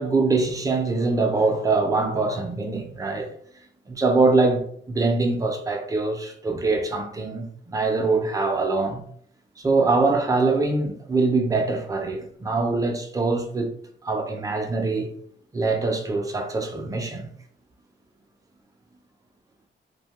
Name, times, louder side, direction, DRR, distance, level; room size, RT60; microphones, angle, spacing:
voice 1, 0.0-3.3 3.9-9.0 9.6-13.7 14.0-15.1 15.5-17.3, right 3 dB, 20° right, 0.4 m, -23 dB
2.6 x 2.1 x 2.9 m
wide cardioid pair, 150°, 20 cm